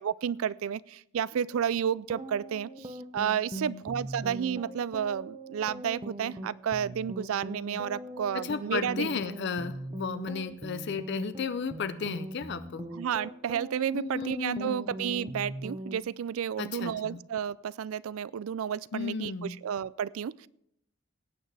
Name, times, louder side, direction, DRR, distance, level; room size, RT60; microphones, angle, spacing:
voice 1, 0.0-9.1 12.9-20.5, right 8 dB, 70° right, 21 dB, 0.3 m, -31 dB
sound 1, 2.0-16.0, right 1 dB, 25° right, 0.7 m, -41 dB
voice 2, 3.5-3.8 8.3-12.9 13.9-14.8 16.6-17.2 18.9-19.6, left 5 dB, 50° left, 12 dB, 0.5 m, -34 dB
18.0 x 8.9 x 3.3 m, 0.74 s
head